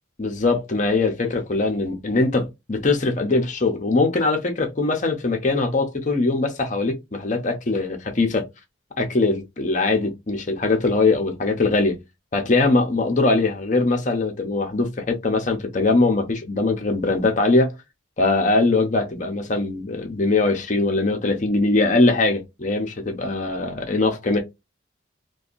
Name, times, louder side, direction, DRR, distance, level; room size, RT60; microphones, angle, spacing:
voice 1, 0.2-8.5 9.0-12.0 12.3-17.7 18.2-24.4, left 3 dB, 40° left, 0.7 m, -21 dB
2.7 x 2.3 x 2.4 m
head